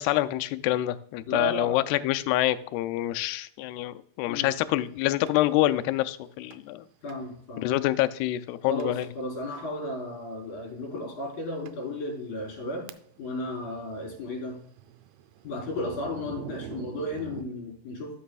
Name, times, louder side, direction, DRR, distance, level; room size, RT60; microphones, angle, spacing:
voice 1, 0.0-6.8 7.6-9.1, left 15 dB, 90° left, 11 dB, 2.6 m, -26 dB
voice 2, 1.3-1.8 4.3-4.5 7.0-7.7 8.6-12.9 13.2-14.6 15.4-18.2, left 1 dB, 50° left, -1 dB, 5.0 m, -34 dB
Thunder, 5.3-5.4 6.5-6.8 7.1-7.2 7.8-7.9 8.8-9.1 9.5-9.7 10.6-10.7 11.3-11.4 11.7-11.8 12.4-13.3 13.6-17.4, right 11 dB, 80° right, 2.3 m, -45 dB
12.5 x 6.9 x 2.3 m, 0.65 s
omnidirectional pair, 4.5 m